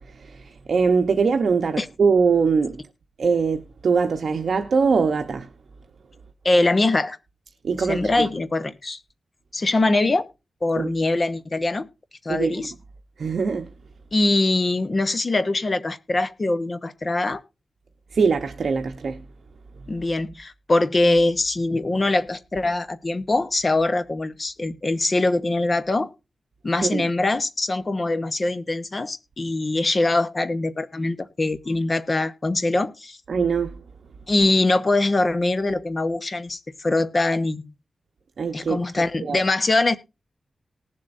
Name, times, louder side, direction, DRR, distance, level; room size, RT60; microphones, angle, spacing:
voice 1, 0.1-2.8 3.2-5.5 7.6-8.3 10.8-10.9 12.3-12.7 13.2-13.7 18.1-19.2 26.8-27.1 33.3-33.8 38.4-38.8 39.2-39.4, right 5 dB, 65° right, 0.9 m, -22 dB
voice 2, 6.4-7.2 7.8-9.0 9.5-10.3 10.6-11.9 12.2-12.7 14.1-17.4 19.9-26.1 26.6-33.2 34.3-37.7 38.5-40.0, left 2 dB, 30° left, 1.0 m, -23 dB
19.0 x 7.5 x 2.6 m
wide cardioid pair, 170°, 0 cm